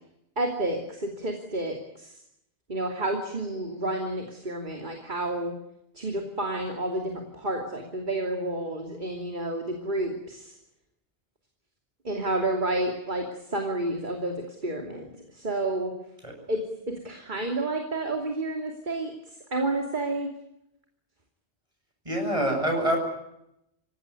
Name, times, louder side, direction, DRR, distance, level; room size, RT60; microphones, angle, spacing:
voice 1, 0.4-2.2 2.7-5.5 5.9-10.5 12.0-15.9 16.5-19.1 19.5-20.3, right 2 dB, 45° right, 3 dB, 3.0 m, -30 dB
voice 2, 22.0-23.0, right 1 dB, 30° right, 2 dB, 8.2 m, -25 dB
27.0 x 17.0 x 9.7 m, 0.81 s
omnidirectional pair, 1.1 m